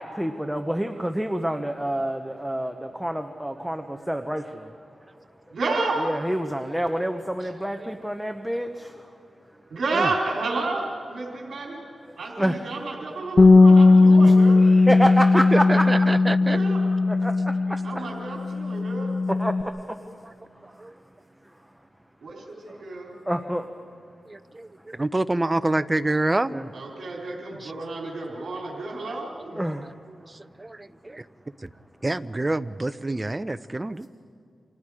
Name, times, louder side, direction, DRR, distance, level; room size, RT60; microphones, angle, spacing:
voice 1, 0.0-4.7 6.0-9.1 12.4-12.6 14.2-15.9 17.1-18.0 19.3-20.2 20.5-20.8 23.3-23.7 26.5-26.7 29.6-29.9, equal, 5° right, 6 dB, 1.1 m, -28 dB
voice 2, 5.5-6.0 7.4-7.5 9.7-11.9 12.2-14.6 16.5-16.8 17.8-19.2 22.2-22.3 22.7-23.2 26.7-29.6, right 3 dB, 65° right, -3 dB, 3.9 m, -31 dB
Bass guitar, 13.4-19.6, left 3 dB, 40° left, 1.0 m, -17 dB
voice 3, 15.5-16.6 20.1-20.3 20.6-20.9 24.3-26.6 27.6-27.7 29.4-29.7 30.1-31.2 31.6-31.7 32.0-34.1, right 2 dB, 20° right, 12 dB, 0.7 m, -27 dB
29.5 x 26.5 x 5.0 m, 2.3 s
wide cardioid pair, 95°, 0 cm